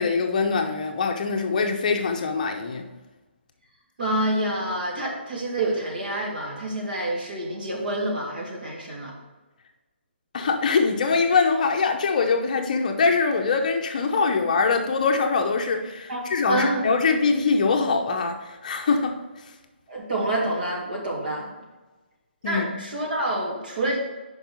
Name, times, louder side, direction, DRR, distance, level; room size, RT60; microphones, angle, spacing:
voice 1, 0.0-2.9 10.3-19.2 22.4-22.7, left 4 dB, 40° left, 4 dB, 0.7 m, -23 dB
voice 2, 4.0-9.1 16.1-16.8 19.9-21.5 22.4-24.0, right 1 dB, 50° right, -3 dB, 2.6 m, -27 dB
5.4 x 5.3 x 6.2 m, 1.2 s
hypercardioid pair, 165°, 6 cm